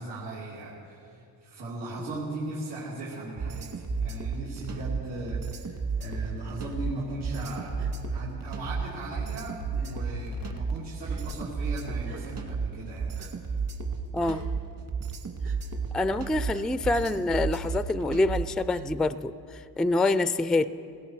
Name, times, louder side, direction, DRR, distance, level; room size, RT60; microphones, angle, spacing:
voice 1, 0.0-13.1 13.4-13.5, right 2 dB, 85° right, -8 dB, 2.8 m, -38 dB
sound 1, 3.4-18.6, right 5 dB, 50° right, 1.9 m, -32 dB
sound 2, 3.9-4.4 5.4-5.5 7.7-8.2 8.6-8.9 9.4-9.8 10.1-10.8 11.3-11.7, left 12 dB, 90° left, 0.7 m, -42 dB
Gasp, 7.7-7.9 8.8-8.9 9.8-10.2 11.0-11.3 12.0-12.3 13.1-13.3 14.2-14.5 15.4-15.6 16.5-16.7 17.7-17.8 18.7-18.9, right 6 dB, 70° right, 1.7 m, -50 dB
voice 2, 14.1-14.5 15.9-20.6, left 2 dB, ahead, 14 dB, 0.3 m, -26 dB
17.5 x 16.5 x 4.7 m, 2.5 s
cardioid pair, 80°, 41 cm